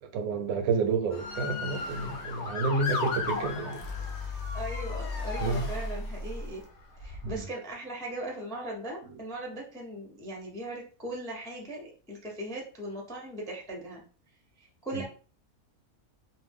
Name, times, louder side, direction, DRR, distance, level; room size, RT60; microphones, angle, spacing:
voice 1, 0.0-3.8 5.4-5.7 7.2-7.4 9.0-9.2 14.9-15.1, right 4 dB, 75° right, 1.0 m, -30 dB
Motor vehicle (road) / Siren, 1.1-6.3 7.0-7.4, left 4 dB, 65° left, 0.7 m, -36 dB
sound 1, 3.7-6.7, left 2 dB, 55° right, 0.6 m, -36 dB
voice 2, 4.5-6.6 7.0-14.1 14.6-15.1, right 1 dB, 5° left, 0.3 m, -39 dB
2.6 x 2.1 x 3.4 m
omnidirectional pair, 1.6 m